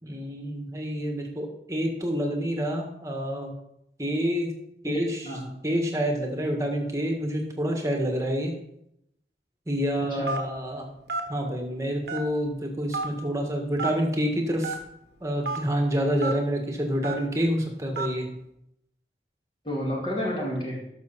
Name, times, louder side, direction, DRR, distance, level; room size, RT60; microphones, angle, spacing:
voice 1, 0.0-3.5 4.0-4.5 4.8-5.3 5.6-8.5 9.7-10.9 11.3-14.8 15.2-18.3, equal, 20° right, 2 dB, 1.7 m, -28 dB
voice 2, 4.8-5.5 10.1-10.3 19.6-20.8, equal, 30° left, -3 dB, 2.3 m, -30 dB
Telephone, 10.3-10.6 11.1-11.3 12.1-12.5 12.9-13.1 13.8-14.0 14.6-14.8 15.4-15.6 16.2-16.3 17.0-17.3 18.0-18.1, right 3 dB, 65° right, 1.3 m, -29 dB
12.5 x 6.3 x 4.2 m, 0.77 s
head